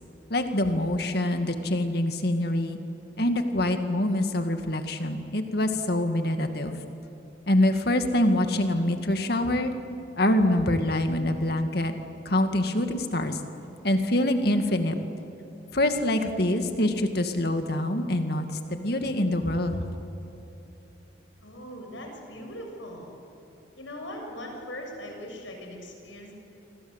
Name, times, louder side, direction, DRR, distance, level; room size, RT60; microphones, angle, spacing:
voice 1, 0.3-2.8 3.2-6.8 7.5-9.7 10.2-11.9 12.3-13.4 13.8-14.9 15.7-19.8, left 1 dB, 55° left, 6 dB, 2.2 m, -25 dB
voice 2, 21.4-23.2 23.8-26.3, equal, 80° left, 2 dB, 7.1 m, -40 dB
28.5 x 25.0 x 8.2 m, 2.9 s
head